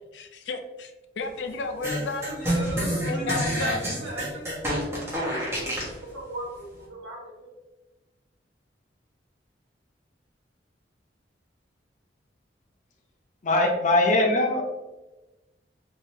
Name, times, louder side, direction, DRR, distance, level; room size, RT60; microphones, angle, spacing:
voice 1, 0.1-2.6 3.0-3.8, left 3 dB, 85° left, 5 dB, 0.5 m, -33 dB
sound 1, 1.8-6.0, equal, 15° right, 1.3 m, -28 dB
voice 2, 2.3-4.5 4.8-4.9 5.5-5.9 6.1-7.5, right 1 dB, 85° right, -5 dB, 1.3 m, -36 dB
voice 3, 13.4-14.6, left 2 dB, 45° left, 1 dB, 0.7 m, -21 dB
3.7 x 3.1 x 2.7 m, 1.1 s
head